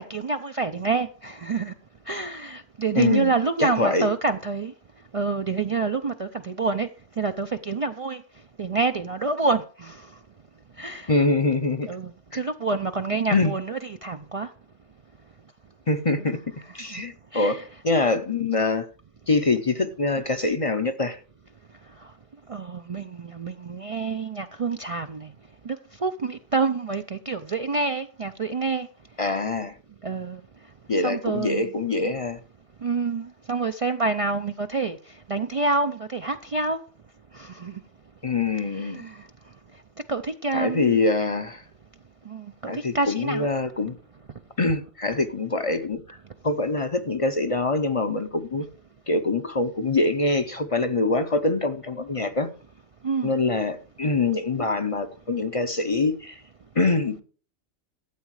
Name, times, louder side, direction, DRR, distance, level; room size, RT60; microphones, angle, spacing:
voice 1, 0.0-1.7 2.1-4.7 5.1-6.9 7.2-8.2 8.6-10.0 10.8-11.1 11.9-14.5 16.9-17.0 17.3-17.6 22.5-25.3 25.7-25.8 26.0-28.9 30.0-30.4 31.0-31.7 32.8-35.0 35.3-36.8 37.3-37.8 38.7-39.2 40.1-41.0 42.3-43.5 53.0-53.3, right 4 dB, 40° right, 0.5 m, -27 dB
voice 2, 3.0-3.3 3.6-4.1 11.1-11.9 12.3-12.4 13.3-13.5 15.9-16.4 16.7-17.6 17.8-18.8 19.3-21.2 29.2-29.7 30.9-32.4 38.2-39.0 40.5-41.6 42.7-44.0 44.6-46.0 46.4-48.7 49.1-52.5 53.2-56.3 56.8-57.2, left 3 dB, 35° left, 0.7 m, -24 dB
13.0 x 8.2 x 4.8 m
omnidirectional pair, 1.2 m